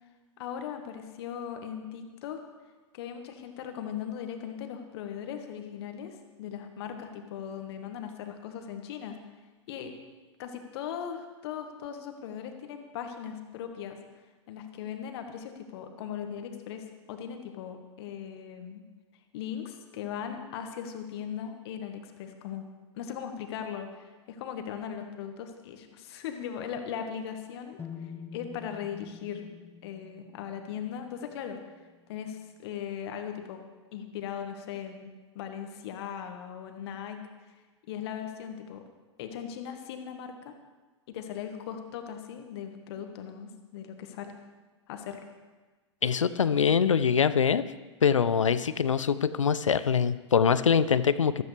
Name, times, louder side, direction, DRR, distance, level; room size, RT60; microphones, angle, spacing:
voice 1, 0.4-2.4 2.9-9.2 9.7-9.9 10.4-13.9 14.5-18.8 19.3-22.6 22.9-29.5 29.8-31.6 32.1-33.6 33.9-37.2 37.5-37.6 37.9-38.8 39.2-40.5 41.1-44.3 44.9-45.2, left 8 dB, 55° left, 6 dB, 1.6 m, -39 dB
sound 1, 27.8-31.7, left 6 dB, 15° left, 0.6 m, -46 dB
voice 2, 46.0-47.7 48.0-51.4, left 7 dB, 85° left, 15 dB, 0.5 m, -24 dB
14.5 x 13.5 x 3.4 m, 1.3 s
figure-of-eight pair, 100°, 16 cm